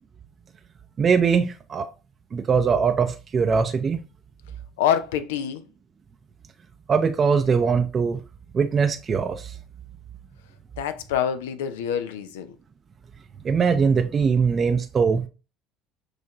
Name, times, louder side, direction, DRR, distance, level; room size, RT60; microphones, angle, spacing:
voice 1, 1.0-1.9 2.3-4.0 6.9-8.2 8.5-9.5 13.4-15.3, right 5 dB, 35° right, 0.5 m, -21 dB
voice 2, 4.8-5.6 10.8-12.5, left 9 dB, 85° left, 0.5 m, -26 dB
6.4 x 2.5 x 2.9 m
hypercardioid pair, 75°, 0 cm